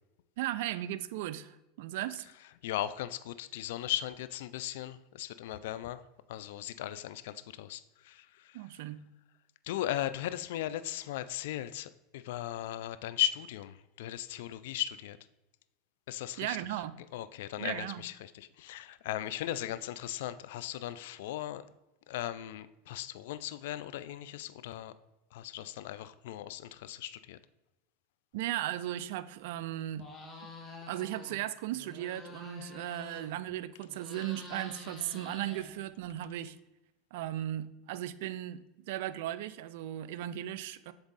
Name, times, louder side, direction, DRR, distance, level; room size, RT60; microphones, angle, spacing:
voice 1, 0.4-2.3 8.5-9.0 16.4-17.0 17.6-18.0 28.3-30.1 30.9-36.6 37.1-40.9, right 13 dB, 70° right, 0.3 m, -36 dB
voice 2, 2.6-6.0 6.3-8.6 9.6-15.2 16.1-16.6 17.1-21.6 22.1-24.9 25.3-27.4, left 13 dB, 75° left, 0.3 m, -37 dB
sound 1, 30.0-31.4 31.7-33.5 33.8-36.1, left 3 dB, 25° left, 1.4 m, -48 dB
7.7 x 3.5 x 4.0 m
hypercardioid pair, 100°, 0 cm